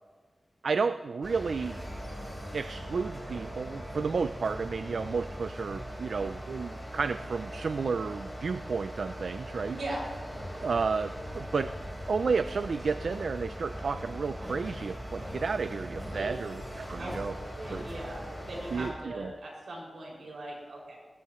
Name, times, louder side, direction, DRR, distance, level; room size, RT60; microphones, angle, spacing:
voice 1, 0.6-1.8 2.5-9.8 10.5-11.7 12.1-17.3 17.7-17.8 18.7-19.3, right 5 dB, 75° right, 11 dB, 0.4 m, -32 dB
sound 1, 1.2-18.9, equal, ahead, 4.0 m, -40 dB
voice 2, 17.6-21.0, right 1 dB, 90° right, -3 dB, 5.9 m, -40 dB
19.5 x 18.0 x 3.1 m, 1.4 s
wide cardioid pair, 120°, 0 cm